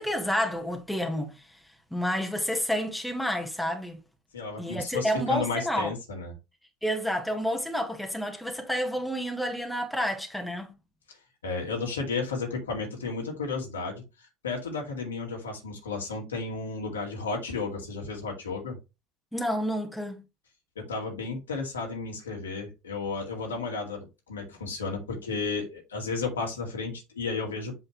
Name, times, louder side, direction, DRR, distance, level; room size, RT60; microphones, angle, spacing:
voice 1, 0.0-1.6 1.9-4.0 4.6-5.9 6.8-10.7 19.3-20.2, equal, 5° left, 1.7 m, -29 dB
voice 2, 4.3-6.3 11.1-11.2 11.4-18.8 20.8-27.7, left 4 dB, 80° left, 2.4 m, -33 dB
7.9 x 4.3 x 3.1 m
figure-of-eight pair, 65°, 0 cm